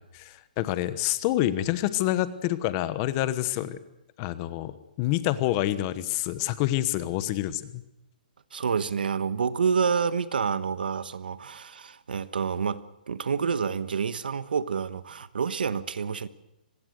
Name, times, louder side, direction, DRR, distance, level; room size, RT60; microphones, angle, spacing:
voice 1, 0.0-3.8 4.2-4.7 5.0-7.8, left 14 dB, 25° left, 1.1 m, -27 dB
voice 2, 8.5-16.3, right 6 dB, 80° right, 1.3 m, -28 dB
25.0 x 19.5 x 6.5 m
hypercardioid pair, 160°, 5 cm